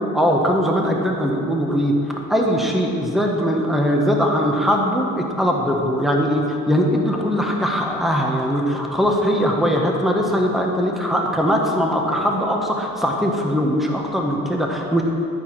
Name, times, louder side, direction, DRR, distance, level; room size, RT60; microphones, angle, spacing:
voice 1, 0.1-15.0, equal, ahead, 0 dB, 1.3 m, -20 dB
12.5 x 4.7 x 6.1 m, 2.6 s
cardioid pair, 90°, 30 cm